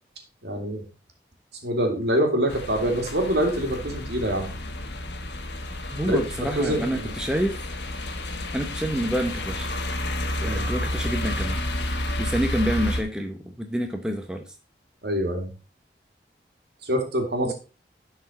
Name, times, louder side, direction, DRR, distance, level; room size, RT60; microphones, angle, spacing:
voice 1, 0.4-0.8 1.6-4.5 6.0-7.1 10.4-10.7 15.0-15.5 16.8-17.5, equal, 75° right, 3 dB, 2.4 m, -25 dB
sound 1, 2.5-13.0, left 1 dB, 85° left, 1.3 m, -30 dB
voice 2, 5.9-7.6 8.5-9.7 10.4-11.6 12.2-14.4 17.4-17.5, equal, 5° right, 4 dB, 0.8 m, -28 dB
11.0 x 4.8 x 4.3 m, 0.32 s
head